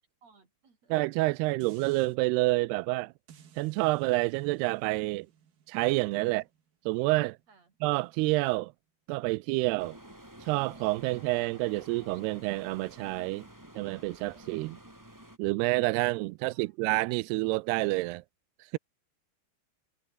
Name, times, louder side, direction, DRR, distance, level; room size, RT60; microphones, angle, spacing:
voice 1, 0.2-1.0 6.2-6.5 7.5-7.8 16.4-16.9, right 4 dB, 40° right, 5.3 m, -63 dB
voice 2, 0.9-3.1 3.6-5.3 5.7-6.4 6.9-7.4 7.8-8.7 9.1-10.0 10.4-13.4 13.8-14.8 15.4-18.2, right 22 dB, 80° right, 2.5 m, -28 dB
sound 1, 1.6-2.2 3.3-8.4 8.9-9.0, right 8 dB, 65° right, 4.7 m, -59 dB
sound 2, 9.8-15.4, right 1 dB, 5° right, 3.1 m, -51 dB
omnidirectional pair, 4.9 m